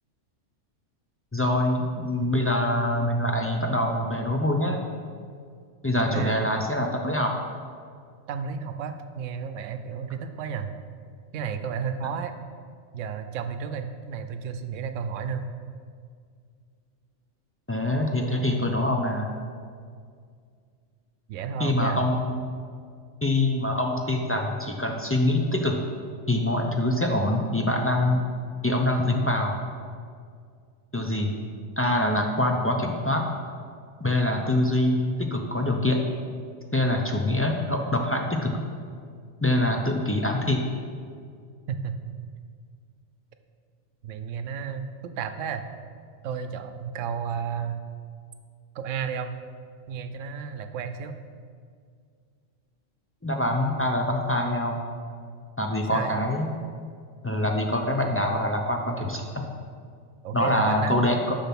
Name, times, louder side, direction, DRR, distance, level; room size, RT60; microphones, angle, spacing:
voice 1, 1.3-4.8 5.8-7.3 17.7-19.3 21.6-22.4 23.2-25.8 26.3-28.2 28.6-29.6 30.9-31.3 31.8-33.2 34.0-36.0 36.7-38.6 39.4-40.6 53.2-54.8 55.6-56.5 57.2-59.3 60.3-61.4, left 1 dB, 20° left, 1 dB, 0.3 m, -24 dB
voice 2, 6.0-6.4 8.3-10.7 11.3-12.3 12.9-15.5 21.3-22.0 41.7-42.2 44.0-45.6 46.2-47.8 48.7-49.3 49.9-51.2 55.9-56.3 60.2-61.0, right 6 dB, 90° right, 8 dB, 1.0 m, -32 dB
6.8 x 5.8 x 6.0 m, 2.1 s
omnidirectional pair, 1.3 m